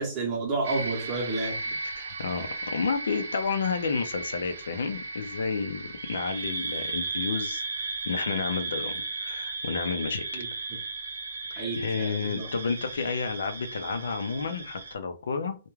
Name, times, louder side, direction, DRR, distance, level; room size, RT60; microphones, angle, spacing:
voice 1, 0.0-1.8 10.3-10.5 11.6-12.5, right 3 dB, 20° right, 0.8 m, -31 dB
sound 1, 0.6-14.9, right 3 dB, 75° right, 0.4 m, -35 dB
voice 2, 2.0-10.4 11.5-15.6, left 5 dB, 85° left, 0.5 m, -31 dB
2.3 x 2.2 x 3.1 m
hypercardioid pair, 175°, 0 cm